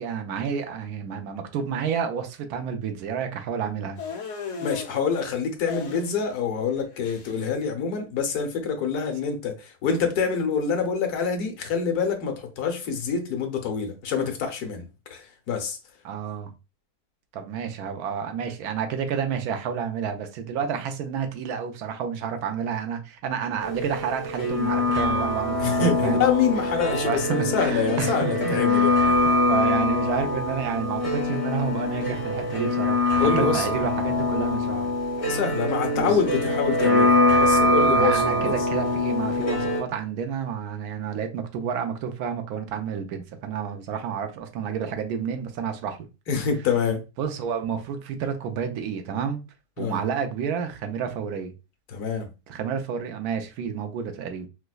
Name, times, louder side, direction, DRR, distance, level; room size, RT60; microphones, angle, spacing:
voice 1, 0.0-4.0 16.0-16.5 17.3-26.3 27.0-34.9 35.3-35.4 35.9-36.2 37.9-46.0 47.2-49.4 49.8-51.5 52.5-54.5, right 7 dB, 75° right, 1.1 m, -30 dB
sound 1, 4.0-4.9 5.7-6.4 6.7-7.5, left 5 dB, 60° left, 1.0 m, -36 dB
voice 2, 4.6-15.8 25.6-29.3 33.2-33.8 35.3-38.6 46.3-47.0 49.8-50.0 51.9-52.3, left 6 dB, 75° left, 1.2 m, -26 dB
sound 2, 23.6-39.8, left 2 dB, 25° left, 0.9 m, -23 dB
4.6 x 2.1 x 2.3 m
omnidirectional pair, 1.7 m